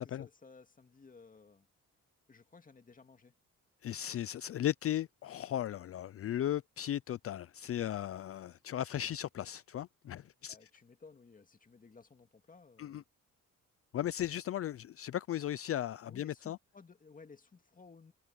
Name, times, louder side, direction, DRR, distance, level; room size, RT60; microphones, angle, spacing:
voice 1, 0.0-1.7 2.3-3.3 10.5-13.0 16.1-18.1, left 4 dB, 25° left, 2.2 m, -57 dB
voice 2, 3.8-10.6 12.8-13.0 13.9-16.6, left 11 dB, 50° left, 0.5 m, -36 dB
cardioid pair, 90°, 30 cm